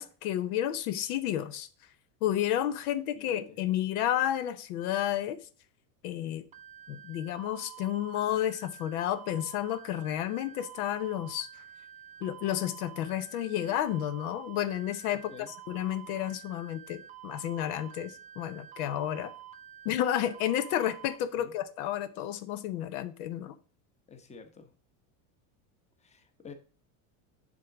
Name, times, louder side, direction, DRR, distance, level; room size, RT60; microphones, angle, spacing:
voice 1, 0.0-1.7 2.2-5.4 6.0-6.5 6.9-11.5 12.2-15.3 15.7-19.3 19.8-23.5, left 11 dB, 75° left, 0.8 m, -31 dB
voice 2, 3.2-3.6 15.3-15.5 21.4-21.5 24.1-24.7 26.0-26.5, left 5 dB, 15° left, 0.9 m, -49 dB
sound 1, 6.5-21.2, right 11 dB, 20° right, 0.4 m, -49 dB
7.6 x 3.8 x 6.0 m
supercardioid pair, 130°, 44 cm